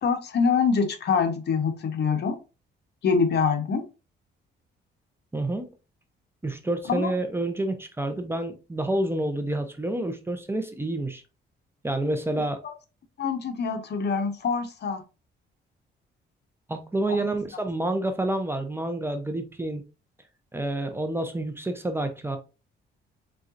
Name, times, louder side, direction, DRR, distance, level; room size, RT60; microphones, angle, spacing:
voice 1, 0.0-2.4 3.0-3.8 6.9-7.1 12.6-12.7 13.2-15.0 17.2-17.3, left 5 dB, 55° left, 1.0 m, -25 dB
voice 2, 5.3-5.7 6.4-11.2 11.8-12.6 16.7-19.8 20.5-22.4, right 1 dB, 10° right, 0.7 m, -28 dB
4.4 x 3.7 x 2.5 m
cardioid pair, 90°, 20 cm